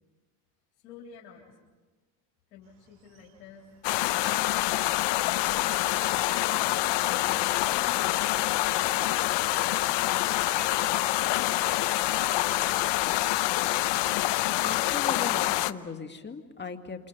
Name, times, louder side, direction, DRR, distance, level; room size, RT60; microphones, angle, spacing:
voice 1, 0.8-1.7 2.5-3.6 6.3-8.2 10.0-10.6, left 7 dB, 85° left, -2 dB, 3.9 m, -49 dB
bird valley, 2.6-13.4, right 7 dB, 65° right, 4.2 m, -51 dB
sound 1, 3.8-15.7, left 17 dB, 55° left, 0.9 m, -26 dB
voice 2, 14.6-17.1, left 5 dB, 20° left, 6 dB, 2.2 m, -38 dB
28.5 x 28.5 x 5.5 m, 1.3 s
supercardioid pair, 100°, 50 cm